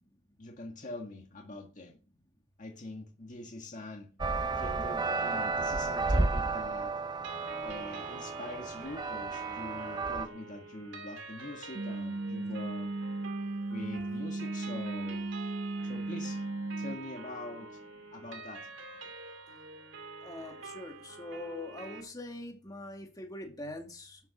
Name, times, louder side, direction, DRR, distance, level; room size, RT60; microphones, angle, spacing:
voice 1, 0.4-2.0 2.6-4.1 4.5-6.9 7.6-12.9 13.7-15.3 15.8-16.4 16.8-17.8 18.1-18.7, left 2 dB, 40° left, 2 dB, 1.8 m, -44 dB
sound 1, 4.2-10.3, right 3 dB, 20° right, 0.7 m, -32 dB
sound 2, 7.2-22.0, right 3 dB, 70° right, 2.6 m, -46 dB
sound 3, 11.7-17.0, right 2 dB, 55° right, 0.7 m, -36 dB
voice 2, 20.2-24.2, left 1 dB, 20° left, 2 dB, 2.3 m, -43 dB
12.5 x 6.9 x 6.6 m, 0.36 s
head